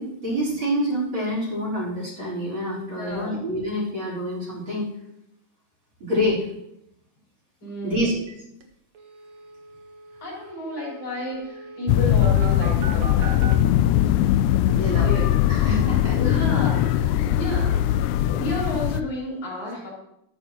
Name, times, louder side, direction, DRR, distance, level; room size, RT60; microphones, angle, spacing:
voice 1, 0.0-4.9 6.0-6.5 7.8-8.1 14.6-16.2, equal, 35° right, -5 dB, 4.8 m, -27 dB
voice 2, 3.0-3.3 7.6-8.1 10.2-13.5 14.7-15.3 16.2-19.9, left 1 dB, 50° left, -5 dB, 6.3 m, -32 dB
sound 1, 8.3-8.4 8.6-8.7 9.0-13.5, right 3 dB, 60° right, 2.3 m, -39 dB
sound 2, 11.9-19.0, left 11 dB, 80° left, 1.9 m, -20 dB
13.0 x 12.5 x 3.0 m, 0.80 s
omnidirectional pair, 3.7 m